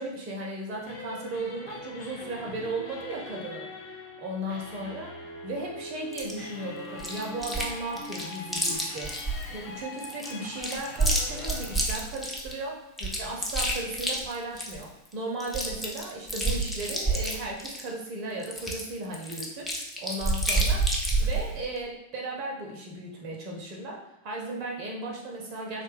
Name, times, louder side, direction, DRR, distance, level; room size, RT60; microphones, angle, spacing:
voice 1, 0.0-3.7 4.2-5.1 5.4-9.1 9.5-19.7 20.0-20.8 21.2-25.8, right 2 dB, 40° right, -1 dB, 0.6 m, -36 dB
sound 1, 0.7-11.8, left 1 dB, 45° left, 0.6 m, -42 dB
Chewing mastication, 6.1-6.3 7.0-7.7 8.0-9.5 10.0-12.5 13.0-14.8 15.1-15.2 15.4-17.9 18.4-21.5, right 2 dB, 5° left, 0.6 m, -28 dB
2.8 x 2.2 x 3.3 m, 0.90 s
figure-of-eight pair, 90°, 0 cm